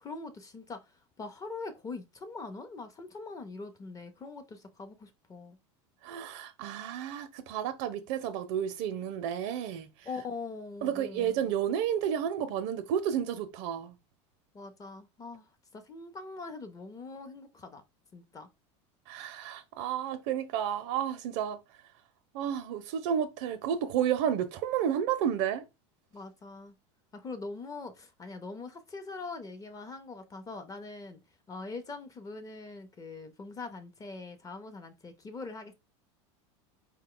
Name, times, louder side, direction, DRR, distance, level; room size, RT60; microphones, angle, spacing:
voice 1, 0.0-5.6 10.0-11.3 14.5-17.8 18.1-18.5 26.1-26.8 27.1-31.2 31.5-35.7, left 3 dB, 20° left, 0.7 m, -42 dB
voice 2, 6.0-9.9 10.8-14.0 19.1-21.6 22.3-25.6, right 9 dB, 65° right, 0.5 m, -31 dB
4.2 x 2.2 x 3.8 m
supercardioid pair, 115°, 15 cm